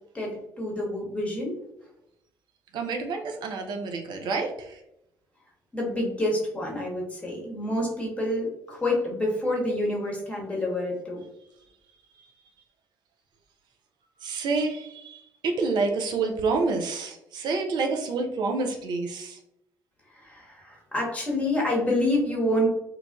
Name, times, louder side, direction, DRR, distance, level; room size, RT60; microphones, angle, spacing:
voice 1, 0.1-1.6 5.7-11.2 20.1-22.7, left 1 dB, 15° left, -2 dB, 1.2 m, -28 dB
voice 2, 2.7-4.8 12.2-12.3 14.2-19.4, right 3 dB, 50° right, 3 dB, 0.5 m, -28 dB
3.1 x 2.3 x 2.3 m, 0.83 s
figure-of-eight pair, 45°, 10 cm